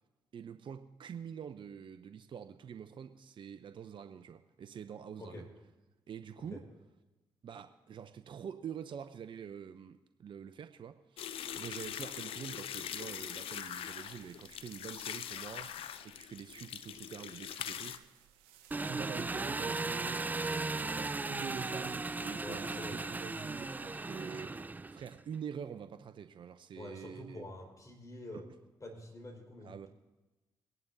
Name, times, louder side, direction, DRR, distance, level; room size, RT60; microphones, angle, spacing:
voice 1, 0.3-5.5 6.1-6.6 7.4-15.7 16.0-18.3 18.8-27.5 28.3-28.4 29.6-29.9, right 7 dB, 55° right, 9 dB, 0.6 m, -46 dB
sound 1, 11.2-18.0, left 10 dB, 70° left, 0.6 m, -42 dB
sound 2, 11.3-24.5, right 11 dB, 85° right, 1.0 m, -63 dB
Engine, 18.7-25.2, right 3 dB, 15° right, 0.3 m, -37 dB
voice 2, 22.4-23.0 26.7-28.5 28.8-29.9, left 1 dB, 35° left, 0 dB, 4.7 m, -47 dB
22.5 x 11.0 x 2.7 m, 1.1 s
hypercardioid pair, 45°, 10 cm